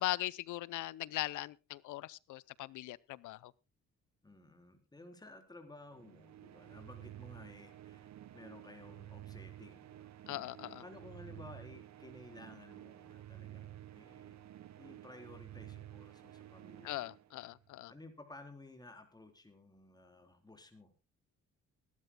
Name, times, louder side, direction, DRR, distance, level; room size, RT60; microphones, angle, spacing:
voice 1, 0.0-3.5 10.3-10.8 16.8-17.9, left 15 dB, 80° left, 0.7 m, -40 dB
voice 2, 4.2-10.1 10.8-14.4 14.8-17.1 17.9-20.9, left 2 dB, 15° left, 3.8 m, -55 dB
sound 1, 5.9-17.7, right 13 dB, 65° right, 1.2 m, -52 dB
22.5 x 12.0 x 2.2 m
cardioid pair, 90°, 30 cm